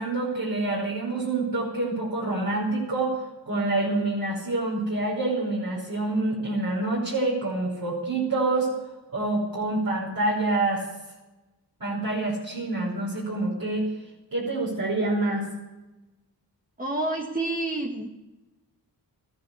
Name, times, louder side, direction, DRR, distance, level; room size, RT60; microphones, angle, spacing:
voice 1, 0.0-8.7 9.1-10.8 11.8-13.9 14.3-15.5, right 2 dB, 55° right, -5 dB, 5.2 m, -27 dB
voice 2, 16.8-18.1, right 2 dB, 20° right, 0 dB, 1.9 m, -28 dB
14.0 x 10.5 x 8.5 m, 1.1 s
cardioid pair, 50°, 40 cm